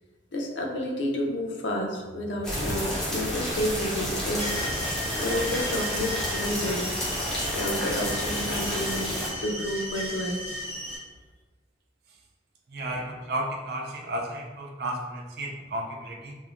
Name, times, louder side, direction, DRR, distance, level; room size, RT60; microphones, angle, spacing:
voice 1, 0.3-4.5 5.2-6.9 7.5-10.5, left 1 dB, 70° left, 0 dB, 0.4 m, -30 dB
sound 1, 2.4-9.3, equal, 5° left, 0.5 m, -30 dB
sound 2, 4.4-11.0, equal, 30° right, 0.8 m, -35 dB
voice 2, 12.7-16.4, right 1 dB, 55° right, 0 dB, 0.4 m, -33 dB
3.0 x 2.1 x 2.4 m, 1.3 s
head